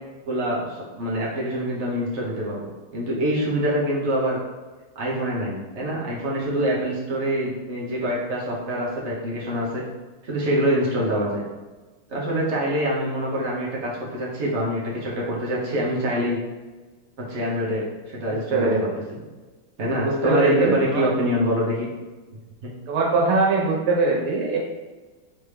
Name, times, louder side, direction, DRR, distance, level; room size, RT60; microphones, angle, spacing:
voice 1, 0.3-4.4 4.9-9.8 10.2-11.4 12.1-16.4 17.3-18.7 19.8-21.9 22.6-22.7, equal, 45° right, -5 dB, 0.9 m, -25 dB
voice 2, 18.3-19.0 20.0-21.1 22.9-24.6, right 3 dB, 85° right, -2 dB, 1.8 m, -22 dB
4.1 x 3.6 x 3.3 m, 1.3 s
omnidirectional pair, 2.4 m